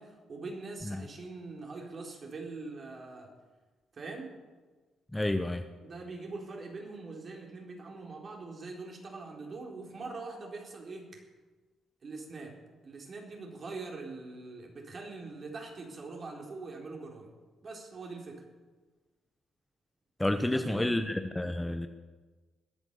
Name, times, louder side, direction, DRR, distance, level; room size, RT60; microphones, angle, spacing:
voice 1, 0.0-3.3 3.9-4.3 5.8-11.2 12.0-12.6 12.8-17.3 17.6-18.4 20.4-21.1, right 3 dB, 45° right, 0 dB, 4.2 m, -43 dB
voice 2, 5.1-5.6 20.2-21.9, left 1 dB, 10° left, 8 dB, 0.9 m, -29 dB
21.0 x 8.9 x 6.9 m, 1.3 s
cardioid pair, 90°, 0 cm